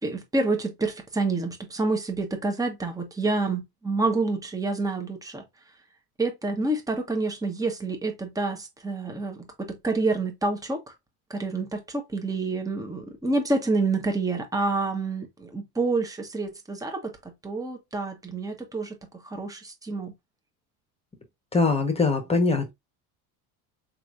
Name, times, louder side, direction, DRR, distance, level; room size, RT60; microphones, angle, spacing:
voice 1, 0.0-5.4 6.2-10.9 11.3-17.2 17.4-19.0 19.3-20.1, right 3 dB, 10° right, 1.1 m, -28 dB
voice 2, 21.5-22.7, left 3 dB, 15° left, 1.2 m, -22 dB
4.2 x 3.1 x 2.5 m
supercardioid pair, 90°, 42 cm